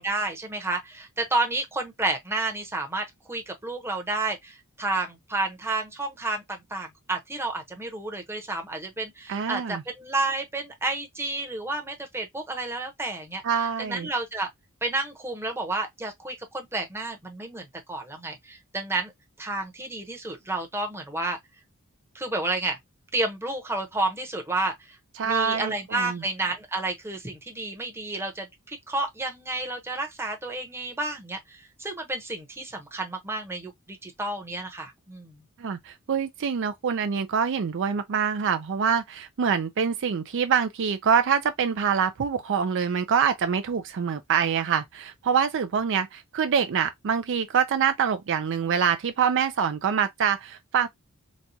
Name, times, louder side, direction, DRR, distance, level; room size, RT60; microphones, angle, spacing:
voice 1, 0.0-13.4 13.8-14.5 14.8-19.1 19.4-21.4 22.1-22.8 23.1-25.0 25.2-35.4, right 2 dB, 10° right, 0.8 m, -31 dB
voice 2, 9.3-9.8 13.4-14.1 25.2-26.2 35.6-50.9, right 7 dB, 55° right, 0.4 m, -25 dB
4.1 x 2.2 x 2.7 m
head